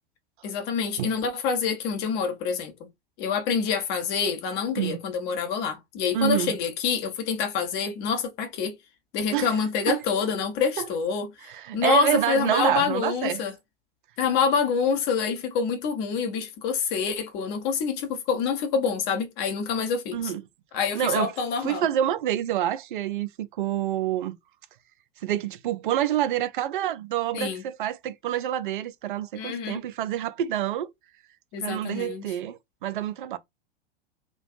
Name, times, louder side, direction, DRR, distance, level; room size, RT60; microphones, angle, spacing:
voice 1, 0.4-2.7 3.2-8.7 9.1-11.3 11.7-13.5 14.2-20.3 20.7-21.8 27.3-27.6 29.3-29.8 31.5-32.2, left 6 dB, 35° left, 0.8 m, -26 dB
voice 2, 6.1-6.5 9.3-9.6 9.9-10.0 10.8-10.9 11.5-13.4 20.1-20.4 20.9-21.3 21.6-24.4 25.2-30.9 31.6-33.4, right 11 dB, 60° right, 0.4 m, -27 dB
2.4 x 2.2 x 2.4 m
figure-of-eight pair, 95°, 29 cm